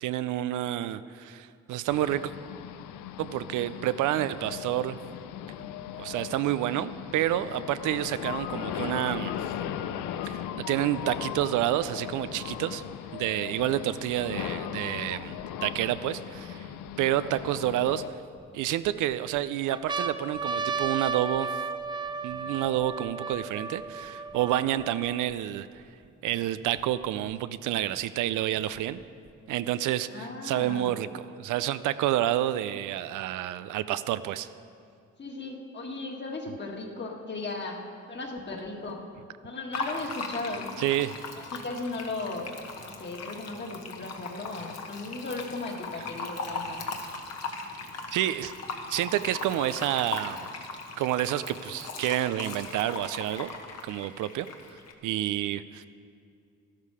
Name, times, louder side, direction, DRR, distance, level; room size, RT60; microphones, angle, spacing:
voice 1, 0.0-2.3 3.2-5.0 6.0-9.3 10.2-12.8 13.1-16.7 17.0-18.0 18.5-21.6 22.2-25.7 26.2-29.0 29.5-34.5 40.8-41.2 48.1-48.5 48.9-50.4 51.0-53.5 53.8-54.5 55.0-55.9, right 13 dB, 85° right, 13 dB, 0.5 m, -29 dB
sound 1, 1.9-18.1, left 10 dB, 85° left, 0.6 m, -38 dB
sound 2, 15.4-15.5 16.1-17.4 18.1-18.9 19.4-19.5 19.7-25.3 26.0-26.1 26.3-27.3 28.3-29.3, right 5 dB, 15° right, 0.5 m, -34 dB
voice 2, 30.1-30.9 35.2-37.8 38.1-39.0 39.4-41.1 41.4-42.5 42.8-46.8, left 3 dB, 35° left, 1 dB, 1.8 m, -36 dB
Fill (with liquid), 39.7-54.9, left 3 dB, 55° left, 1.4 m, -38 dB
12.5 x 12.0 x 4.9 m, 2.4 s
cardioid pair, 90°, 30 cm